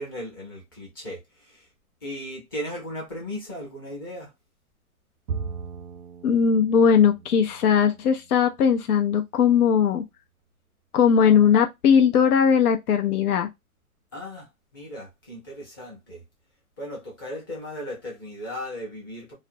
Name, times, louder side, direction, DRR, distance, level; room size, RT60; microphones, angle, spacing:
voice 1, 0.0-1.7 2.0-4.3 14.1-16.2 16.8-19.3, left 1 dB, 15° left, 0.5 m, -36 dB
Bowed string instrument, 5.3-8.7, right 5 dB, 80° right, 0.6 m, -38 dB
voice 2, 6.2-10.0 10.9-13.5, left 7 dB, 85° left, 0.6 m, -19 dB
2.4 x 2.0 x 2.5 m
hypercardioid pair, 150°, 44 cm